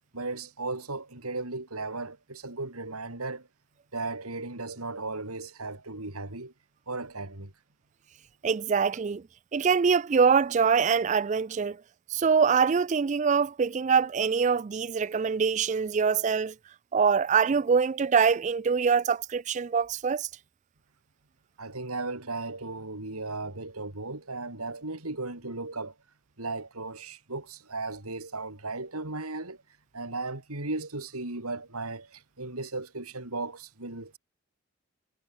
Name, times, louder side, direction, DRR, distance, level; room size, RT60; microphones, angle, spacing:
voice 1, 0.1-3.5 3.9-6.5 6.9-7.5 21.6-26.0 26.4-29.6 29.9-34.2, right 3 dB, 90° right, 3.9 m, -36 dB
voice 2, 8.4-9.2 9.5-11.8 12.1-16.5 16.9-20.3, right 6 dB, 35° right, 0.3 m, -24 dB
head